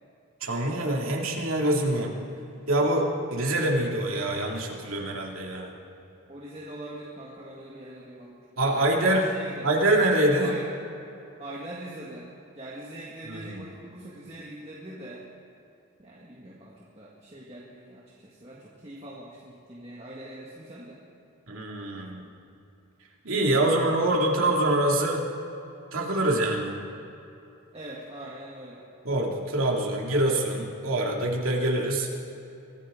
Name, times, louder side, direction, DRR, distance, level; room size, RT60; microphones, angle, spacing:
voice 1, 0.4-2.1 2.7-5.7 8.6-9.3 9.6-10.5 13.3-13.6 21.5-22.2 23.2-25.2 25.9-26.8 29.0-32.1, right 1 dB, 85° right, -1 dB, 2.5 m, -25 dB
voice 2, 6.3-9.7 10.4-10.7 11.4-12.3 12.6-15.2 16.0-21.0 27.7-28.8, right 1 dB, 30° right, -5 dB, 1.8 m, -42 dB
24.0 x 14.0 x 3.8 m, 2.8 s
head